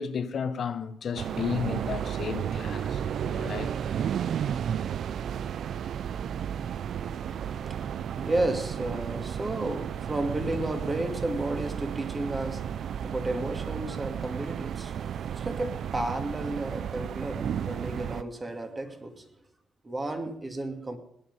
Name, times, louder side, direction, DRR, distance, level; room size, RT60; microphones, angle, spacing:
voice 1, 0.0-3.7, left 6 dB, 55° left, 1.4 m, -33 dB
sound 1, 1.2-18.2, right 9 dB, 65° right, 0.5 m, -33 dB
voice 2, 6.9-19.3 19.8-21.0, right 2 dB, 25° right, 2.6 m, -33 dB
18.0 x 10.5 x 5.7 m
cardioid pair, 90°, 0 cm